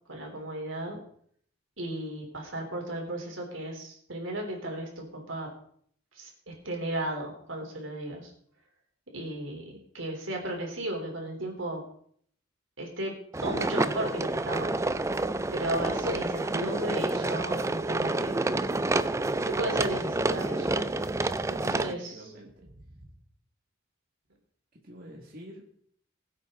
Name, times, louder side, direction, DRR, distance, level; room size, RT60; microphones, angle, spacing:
voice 1, 0.1-1.0 1.8-5.5 6.2-8.3 9.1-11.8 12.8-13.1 13.4-14.8 15.5-18.5 19.5-20.8 21.5-22.3, right 1 dB, 75° right, 1 dB, 3.8 m, -35 dB
sound 1, 13.3-21.9, right 2 dB, 15° right, 0.4 m, -29 dB
voice 2, 21.6-22.7 24.8-25.8, right 1 dB, 45° right, -2 dB, 2.1 m, -47 dB
20.5 x 8.6 x 3.9 m, 0.62 s
head